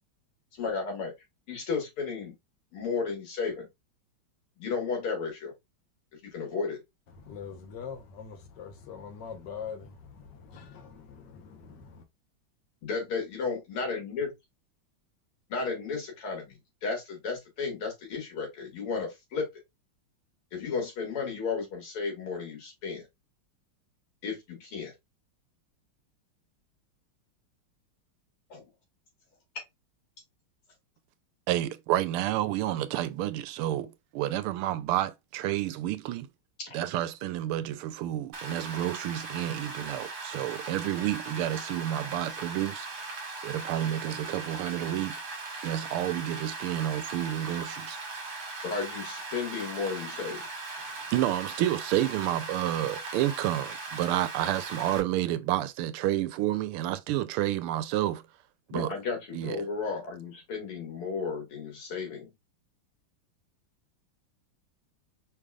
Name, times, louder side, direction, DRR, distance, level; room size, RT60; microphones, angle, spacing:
voice 1, 0.6-1.1 1.5-2.3 2.7-3.7 4.6-5.5 6.2-6.8 12.8-14.3 15.5-19.5 20.5-23.1 24.2-24.9 28.5-28.6 36.6-36.8 48.6-50.4 58.7-62.3, left 5 dB, 85° left, 2.7 m, -33 dB
voice 2, 7.3-12.0, left 6 dB, 60° left, 1.4 m, -43 dB
voice 3, 31.5-36.3 36.7-42.9 43.4-45.2 45.6-48.0 51.1-58.2 58.7-58.9 59.3-59.6, right 13 dB, 90° right, 1.5 m, -30 dB
Rain, 38.3-55.0, right 3 dB, 65° right, 1.9 m, -39 dB
5.1 x 3.4 x 2.3 m
omnidirectional pair, 2.4 m